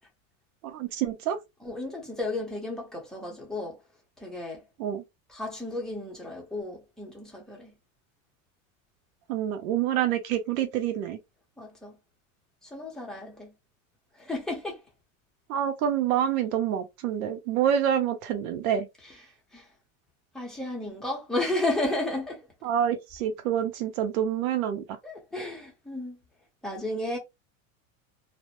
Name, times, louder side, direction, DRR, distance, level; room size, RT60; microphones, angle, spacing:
voice 1, 0.6-1.4 4.8-5.0 9.3-11.2 15.5-18.9 22.6-24.8, right 9 dB, 85° right, 0.7 m, -27 dB
voice 2, 1.6-3.8 4.2-4.6 5.3-7.7 11.6-11.9 12.6-13.5 14.2-14.8 19.0-19.1 19.5-19.7 20.3-22.5 25.0-26.2 26.6-27.2, left 2 dB, ahead, 0.6 m, -33 dB
2.1 x 2.0 x 2.9 m
supercardioid pair, 135°, 41 cm